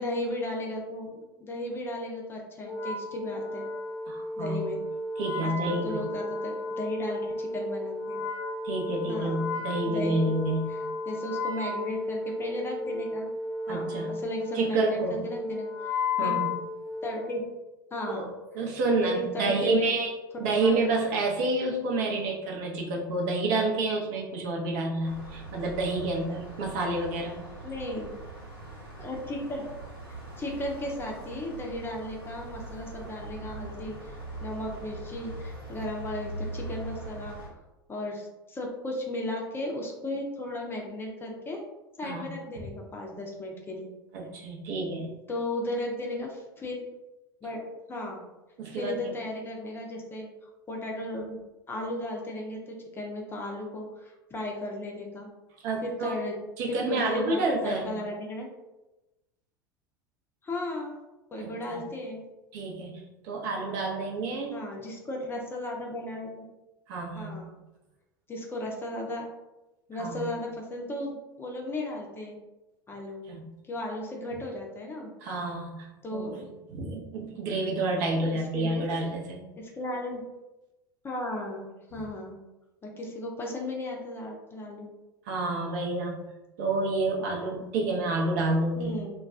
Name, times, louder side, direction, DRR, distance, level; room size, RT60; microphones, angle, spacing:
voice 1, 0.0-3.7 4.4-4.8 5.4-8.2 9.1-9.5 9.8-10.3 10.7-10.8 11.1-13.3 13.7-15.7 16.2-16.4 17.0-17.4 17.9-18.3 19.0-20.0 20.6-20.9 27.6-28.2 29.0-29.6 30.4-37.4 37.9-41.6 42.0-43.9 45.3-46.8 47.4-48.3 48.7-50.3 50.7-51.4 51.7-55.3 55.8-56.4 56.7-58.5 60.4-61.0 61.3-62.2 64.5-66.4 67.1-67.6 68.3-69.3 69.9-72.4 72.9-73.3 73.6-75.1 76.0-76.4 78.3-78.9 79.6-80.2 81.0-82.4 82.8-84.9 88.8-89.1, left 1 dB, 20° left, 0 dB, 0.5 m, -35 dB
Wind instrument woodwind instrument, 2.6-17.4, left 2 dB, 65° left, 0.5 m, -33 dB
voice 2, 4.1-4.6 5.2-6.0 8.6-10.7 13.7-14.2 14.5-15.2 16.2-16.5 18.1-20.1 20.4-27.4 42.0-42.3 44.1-45.1 48.6-49.1 55.6-56.1 56.6-58.0 61.4-61.8 62.5-64.6 66.9-67.4 70.0-70.2 73.3-73.4 75.2-75.9 76.1-76.4 76.7-79.4 85.3-86.2 86.6-88.9, right 2 dB, 55° right, -2 dB, 0.7 m, -29 dB
sound 1, 25.0-37.5, right 2 dB, 75° right, 1.4 m, -41 dB
2.3 x 2.2 x 3.4 m, 1.0 s
figure-of-eight pair, 80°, 12 cm